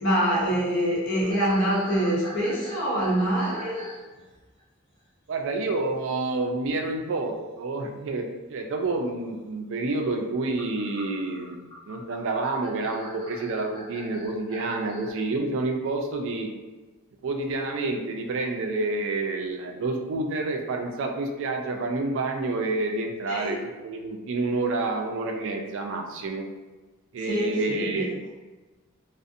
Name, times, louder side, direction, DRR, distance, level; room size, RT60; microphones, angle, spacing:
voice 1, 0.0-3.9 23.3-23.5 27.2-28.0, equal, 60° left, -6 dB, 0.8 m, -25 dB
sound 1, 1.2-4.0 4.3-4.6 6.8-7.0 8.3-8.4 10.3-15.1, equal, 20° left, 0.7 m, -43 dB
voice 2, 5.3-11.6 11.9-16.5 17.2-26.4 27.1-28.1, right 3 dB, 60° right, 3 dB, 0.3 m, -29 dB
2.5 x 2.0 x 2.5 m, 1.2 s
head